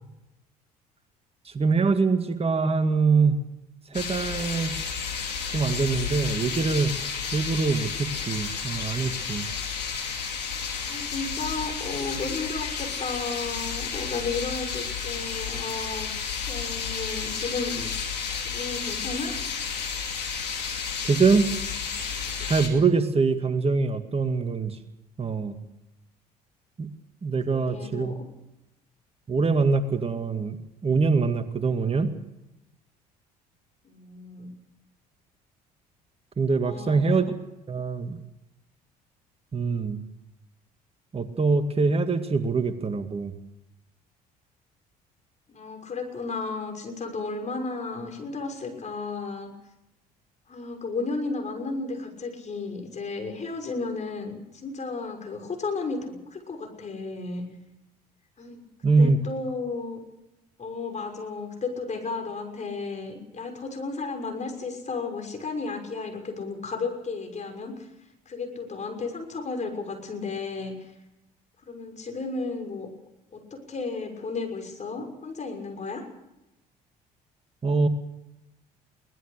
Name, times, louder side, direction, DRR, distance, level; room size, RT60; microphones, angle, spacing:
voice 1, 1.5-3.4 3.9-4.8 5.5-7.0 7.3-9.5 21.0-21.5 22.1-24.8 25.2-25.6 26.8-26.9 27.2-28.2 29.3-32.1 36.4-37.3 37.7-38.2 39.5-40.0 41.1-43.3 58.8-59.2 77.6-77.9, right 4 dB, 30° right, 9 dB, 2.2 m, -24 dB
sound 1, 3.9-22.7, left 6 dB, 85° left, 2.8 m, -32 dB
voice 2, 10.9-16.1 16.4-17.9 18.4-19.3 27.4-28.3 33.8-34.5 36.6-37.0 45.5-49.5 50.5-57.4 58.4-60.0 60.6-67.9 68.3-70.9 71.6-72.9 73.3-76.0, left 4 dB, 35° left, 4 dB, 6.3 m, -33 dB
23.0 x 19.0 x 6.7 m, 0.91 s
figure-of-eight pair, 55°, 20 cm